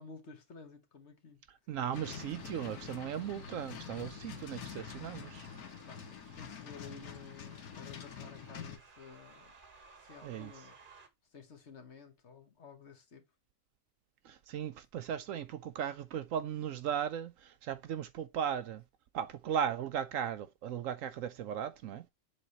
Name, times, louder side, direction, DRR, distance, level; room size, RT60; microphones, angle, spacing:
voice 1, 0.0-1.4 5.8-9.5 10.0-10.7 11.3-13.2, left 5 dB, 50° left, 1.4 m, -53 dB
voice 2, 1.7-5.5 10.2-10.5 14.2-18.8 19.1-22.0, right 9 dB, 70° right, 0.9 m, -37 dB
sound 1, 1.9-8.8, left 7 dB, 90° left, 1.5 m, -46 dB
sound 2, 1.9-11.1, right 4 dB, 40° right, 1.1 m, -58 dB
7.4 x 3.2 x 4.0 m
omnidirectional pair, 1.5 m